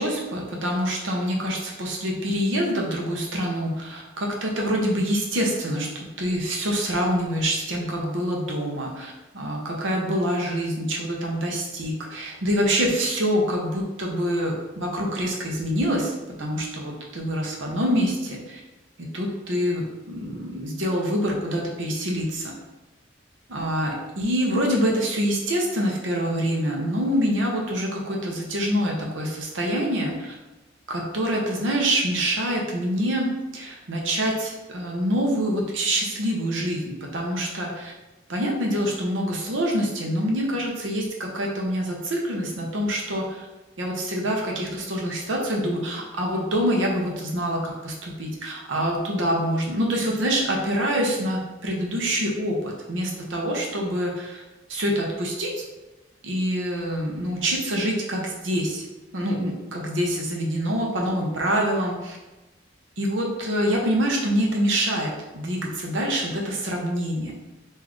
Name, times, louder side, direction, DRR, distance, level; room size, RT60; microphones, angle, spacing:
voice 1, 0.0-18.6 19.0-22.5 23.5-30.3 30.9-37.9 38.3-43.5 43.8-54.4 54.7-55.7 56.2-58.9 59.1-62.2 63.0-67.3, equal, 85° right, -1 dB, 0.8 m, -26 dB
3.9 x 2.7 x 3.1 m, 1.1 s
head